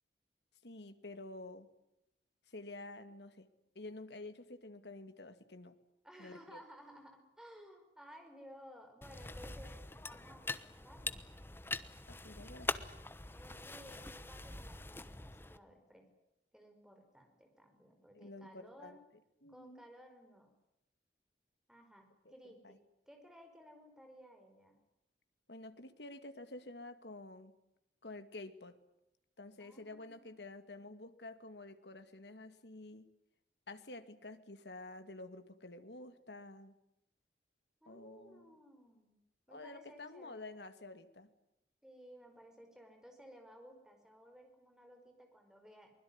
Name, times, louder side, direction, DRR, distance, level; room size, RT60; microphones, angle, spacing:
voice 1, 0.6-1.7 2.5-3.5 3.7-5.8 6.2-6.6 12.0-12.7 18.1-19.0 19.4-19.9 22.6-22.8 25.5-27.5 28.0-28.8 29.4-33.1 33.7-36.7 37.9-38.6 39.5-41.3, left 2 dB, 70° left, 9 dB, 2.4 m, -50 dB
voice 2, 6.0-11.3 13.3-16.1 16.5-19.0 19.5-20.5 21.7-22.8 23.1-24.8 29.6-30.5 37.8-39.2 39.5-40.5 41.8-45.9, equal, 5° right, 4 dB, 5.1 m, -57 dB
sound 1, 9.0-15.6, left 2 dB, 15° left, 1.0 m, -43 dB
23.5 x 21.5 x 9.8 m, 0.88 s
head